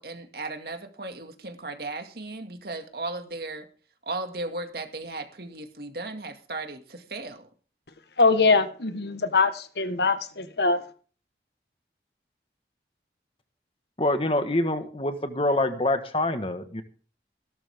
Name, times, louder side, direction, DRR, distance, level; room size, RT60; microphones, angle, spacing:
voice 1, 0.0-3.7 4.1-7.5, right 2 dB, 60° right, 5 dB, 2.2 m, -36 dB
voice 2, 8.2-10.8, left 4 dB, 75° left, 10 dB, 1.5 m, -22 dB
voice 3, 14.0-16.8, left 1 dB, 30° left, 8 dB, 1.5 m, -25 dB
17.0 x 12.5 x 3.6 m, 0.40 s
head